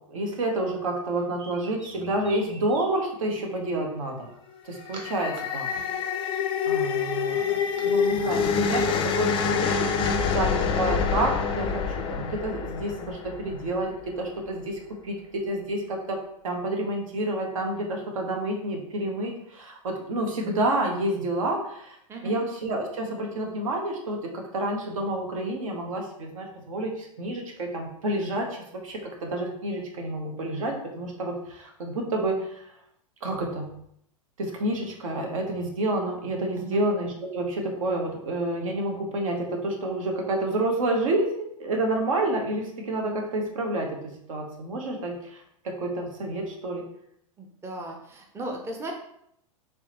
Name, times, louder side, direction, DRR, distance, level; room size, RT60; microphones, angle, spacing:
voice 1, 0.1-4.3 4.6-5.7 6.6-9.3 9.6-16.2 16.4-22.0 22.2-28.6 28.8-32.6 33.2-33.7 34.4-46.8, right 1 dB, 70° right, 2 dB, 0.9 m, -29 dB
sound 1, 1.1-3.4 4.2-5.4 5.7-7.9, right 2 dB, 30° right, 0.9 m, -48 dB
sound 2, 4.7-14.0, left 6 dB, 30° left, 0.4 m, -26 dB
voice 2, 47.4-48.9, right 1 dB, 15° right, 2 dB, 0.6 m, -36 dB
3.5 x 3.1 x 3.0 m, 0.73 s
hypercardioid pair, 100°, 18 cm